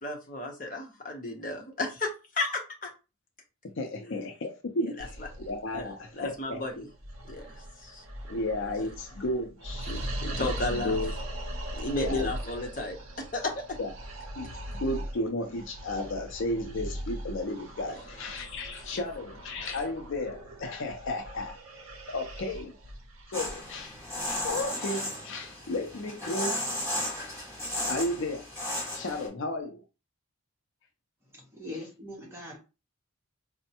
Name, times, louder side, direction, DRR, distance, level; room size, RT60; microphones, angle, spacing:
voice 1, 0.0-2.1 2.3-2.9 5.0-5.1 5.7-5.9 6.1-6.8 7.3-8.0 8.3-8.4 9.9-11.0 11.8-13.0 13.3-13.6 17.9-18.0, left 2 dB, 35° left, 0.8 m, -33 dB
voice 2, 3.6-6.6 8.3-9.9 10.4-11.1 12.0-12.3 13.8-13.9 14.4-22.8 23.3-24.0 24.3-27.0 27.9-28.5 28.9-29.8, left 1 dB, 55° left, 0.5 m, -34 dB
sound 1, 5.0-24.7, right 1 dB, 60° right, 0.7 m, -40 dB
sound 2, 23.3-29.3, left 1 dB, 10° left, 1.8 m, -34 dB
voice 3, 31.3-32.6, left 1 dB, 10° right, 0.9 m, -41 dB
4.3 x 2.1 x 2.8 m
head